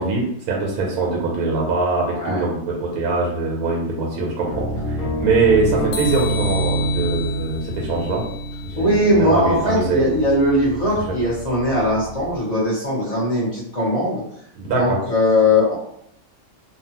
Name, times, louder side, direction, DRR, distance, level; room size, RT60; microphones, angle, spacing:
voice 1, 0.0-8.2 8.6-10.1 11.1-11.2 14.6-15.0, right 3 dB, 85° right, -1 dB, 1.1 m, -22 dB
voice 2, 2.1-2.4 8.8-14.2 14.7-15.7, left 1 dB, 30° left, -8 dB, 0.8 m, -19 dB
sound 1, 4.5-12.4, right 1 dB, 65° left, 1.1 m, -28 dB
sound 2, 5.9-9.0, left 6 dB, 85° left, 1.1 m, -33 dB
2.7 x 2.4 x 2.8 m, 0.73 s
omnidirectional pair, 1.6 m